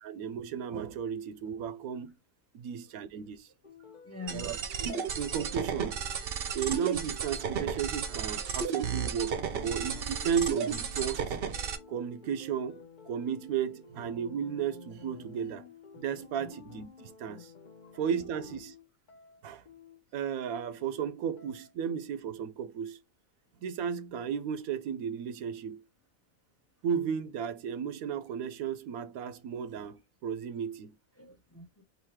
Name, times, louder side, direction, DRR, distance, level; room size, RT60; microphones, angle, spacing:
voice 1, 0.0-2.1 2.5-3.5 4.3-6.0 6.5-11.4 11.9-15.7 16.0-17.5 17.9-18.7 19.4-19.6 20.1-23.0 23.6-25.8 26.8-30.9, right 7 dB, 85° right, 1.1 m, -34 dB
voice 2, 2.6-3.0 3.8-4.5 16.4-16.7 17.8-17.9 31.2-31.8, left 3 dB, 15° left, 0.6 m, -46 dB
sound 1, 3.6-21.9, left 5 dB, 40° left, 0.8 m, -52 dB
sound 2, 4.3-11.8, right 7 dB, 55° right, 0.7 m, -33 dB
3.9 x 2.8 x 4.3 m
omnidirectional pair, 1.5 m